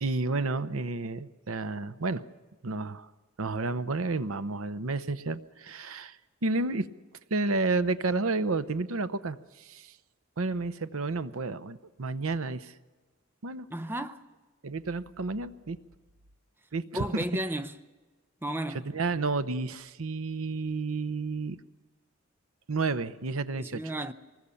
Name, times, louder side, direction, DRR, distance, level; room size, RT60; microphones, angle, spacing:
voice 1, 0.0-2.3 2.6-3.1 3.4-6.2 6.4-6.9 7.3-9.9 10.4-12.7 13.4-13.7 14.6-15.8 16.7-17.2 18.7-21.6 22.7-23.9, right 3 dB, 90° right, 0.8 m, -31 dB
voice 2, 13.7-14.2 16.9-17.7 18.4-18.8 23.6-24.1, right 1 dB, 10° right, 0.7 m, -33 dB
25.0 x 20.0 x 7.0 m
head